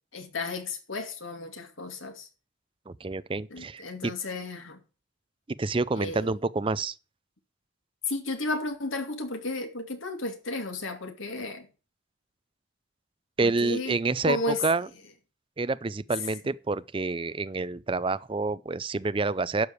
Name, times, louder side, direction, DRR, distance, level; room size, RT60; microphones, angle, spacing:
voice 1, 0.1-2.3 3.5-4.8 6.0-6.3 8.1-11.7 13.4-14.0 14.2-14.6, left 2 dB, 85° left, 2.3 m, -33 dB
voice 2, 2.9-4.1 5.6-6.9 13.4-14.4 14.6-14.9 15.6-19.7, right 3 dB, 25° right, 0.4 m, -28 dB
12.0 x 4.9 x 8.2 m
head